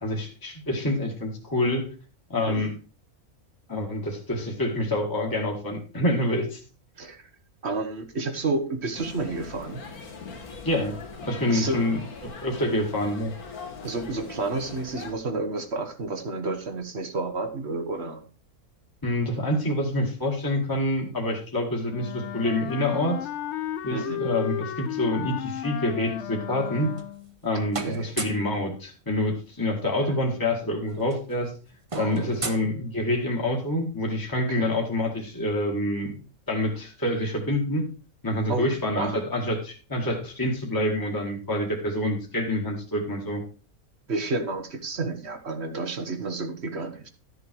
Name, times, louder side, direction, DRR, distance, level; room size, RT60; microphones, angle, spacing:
voice 1, 0.0-1.9 2.3-2.7 3.7-6.6 10.6-11.0 11.2-12.0 12.2-13.3 19.0-23.2 23.8-26.9 27.4-31.5 32.0-36.1 36.5-37.8 38.2-43.4, left 1 dB, 15° left, -2 dB, 2.0 m, -27 dB
voice 2, 7.0-7.3 7.6-9.8 11.5-11.8 13.8-18.2 23.9-24.2 27.6-28.2 31.9-32.4 34.3-34.8 38.5-39.2 44.1-47.1, right 3 dB, 50° right, 7 dB, 1.5 m, -31 dB
sound 1, 8.9-15.1, left 4 dB, 85° left, 2.2 m, -41 dB
Wind instrument woodwind instrument, 21.9-27.3, left 11 dB, 60° left, 0.9 m, -33 dB
sound 2, 26.7-27.4 27.7-28.5 29.9-30.0 30.2-30.4 30.7-33.4, right 4 dB, 25° right, 0.8 m, -37 dB
12.5 x 6.9 x 4.6 m, 0.35 s
omnidirectional pair, 1.5 m